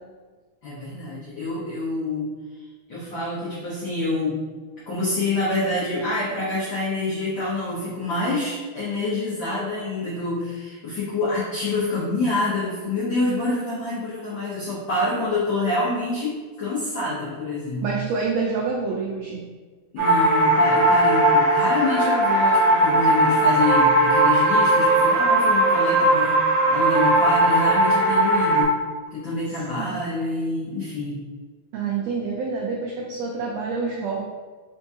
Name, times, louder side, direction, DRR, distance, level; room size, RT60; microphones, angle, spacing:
voice 1, 0.6-2.3 2.9-4.4 4.9-16.3 16.6-17.9 19.9-26.4 26.7-28.7 29.1-31.2, left 2 dB, 80° left, -8 dB, 1.0 m, -26 dB
voice 2, 17.8-19.4 29.8-29.9 31.7-34.2, right 4 dB, 85° right, -2 dB, 1.4 m, -27 dB
sound 1, 20.0-28.6, right 1 dB, 55° right, 1.5 m, -18 dB
4.5 x 3.6 x 2.7 m, 1.4 s
omnidirectional pair, 3.6 m